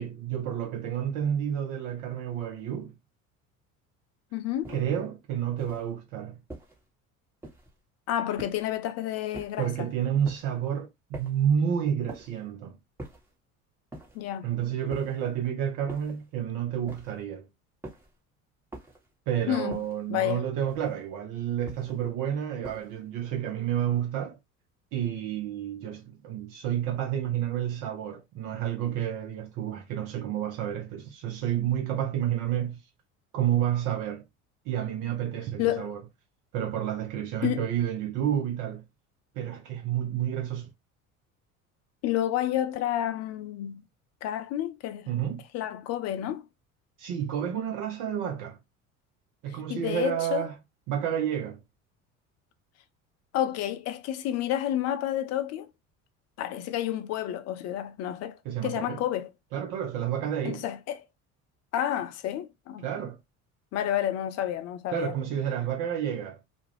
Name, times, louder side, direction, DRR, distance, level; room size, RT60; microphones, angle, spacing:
voice 1, 0.0-2.9 4.7-6.4 9.6-12.8 14.4-17.5 19.3-24.4 24.9-32.9 33.3-34.2 34.7-36.0 36.5-38.9 39.3-40.7 45.1-45.5 47.0-48.6 49.4-50.5 50.9-51.6 58.4-59.0 59.5-60.7 62.8-63.2 64.9-66.4, right 9 dB, 50° right, 0.6 m, -30 dB
voice 2, 4.3-4.7 8.1-9.9 14.1-14.5 19.5-19.8 20.1-20.4 35.6-35.9 37.4-37.6 42.0-43.8 44.2-45.1 45.5-46.4 49.7-50.5 53.3-55.7 56.4-59.3 60.4-61.0 61.7-62.9 63.7-65.1, left 12 dB, 40° left, 0.4 m, -30 dB
sound 1, 4.6-5.0 5.6-5.9 6.5-6.9 7.4-7.8 8.4-8.8 9.3-9.7 10.2-10.6 11.1-11.5 12.1-12.5 13.0-13.4 13.9-14.3 14.9-15.3 15.9-16.3 16.9-17.3 17.8-18.2 18.7-19.1 19.7-20.1 20.7-21.1 21.7-22.1 22.6-23.1, right 1 dB, 5° right, 0.9 m, -45 dB
2.3 x 2.0 x 3.1 m
figure-of-eight pair, 65°, 42 cm